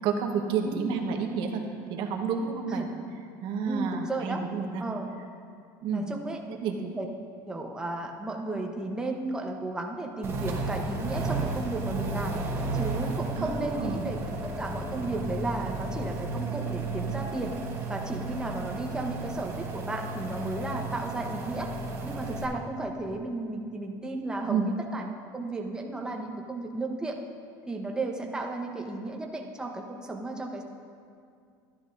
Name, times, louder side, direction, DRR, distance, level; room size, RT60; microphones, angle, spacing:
voice 1, 0.0-1.6 1.9-2.8 3.4-4.8 5.8-6.1 6.6-6.8 13.4-14.1 24.4-24.7, right 6 dB, 60° right, 3 dB, 1.0 m, -30 dB
voice 2, 0.6-1.0 2.7-2.9 3.6-4.4 4.8-5.1 5.9-7.1 7.4-12.3 12.7-17.6 17.9-21.7 22.0-27.2 27.7-30.6, right 2 dB, 10° right, 1 dB, 0.8 m, -34 dB
sound 1, 10.2-22.4, right 3 dB, 25° right, 1.2 m, -33 dB
12.5 x 10.5 x 2.6 m, 2.3 s
cardioid pair, 140°, 9 cm